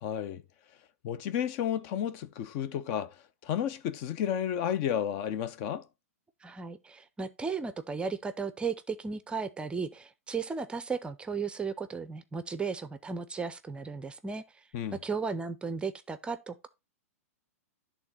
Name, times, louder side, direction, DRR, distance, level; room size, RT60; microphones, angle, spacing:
voice 1, 0.0-0.4 1.0-3.2 3.4-5.8 14.7-15.0, left 9 dB, 45° left, 0.8 m, -32 dB
voice 2, 6.4-16.7, right 5 dB, 10° right, 0.6 m, -35 dB
11.0 x 3.7 x 4.1 m
hypercardioid pair, 110°, 8 cm